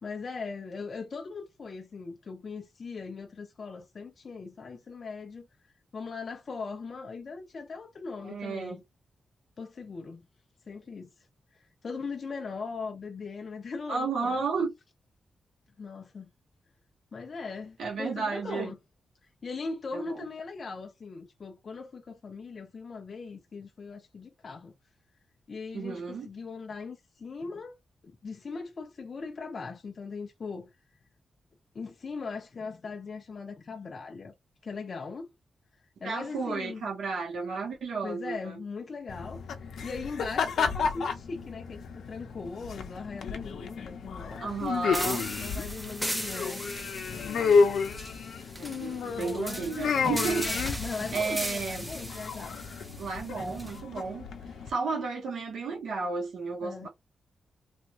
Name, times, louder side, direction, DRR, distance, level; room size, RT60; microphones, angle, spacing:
voice 1, 0.0-5.5 5.9-8.8 9.6-10.2 10.7-11.1 11.8-14.4 15.8-16.3 17.1-18.8 19.4-24.7 25.5-27.8 28.2-30.7 31.7-34.3 34.6-35.3 36.0-36.9 38.0-39.5 39.8-44.6 45.4-46.6 49.1-49.8 50.4-52.6 56.6-56.9, left 4 dB, 40° left, 0.5 m, -39 dB
voice 2, 8.2-8.8 13.9-14.7 17.8-18.7 19.9-20.2 25.7-26.3 36.0-38.6 44.4-45.3 48.6-50.5 50.7-51.9 53.0-54.3 54.7-56.9, right 4 dB, 90° right, 1.0 m, -33 dB
sound 1, 39.1-54.7, left 5 dB, 90° left, 0.7 m, -31 dB
sound 2, 44.9-53.8, equal, 5° right, 0.7 m, -37 dB
3.5 x 2.4 x 3.0 m
wide cardioid pair, 160°, 0 cm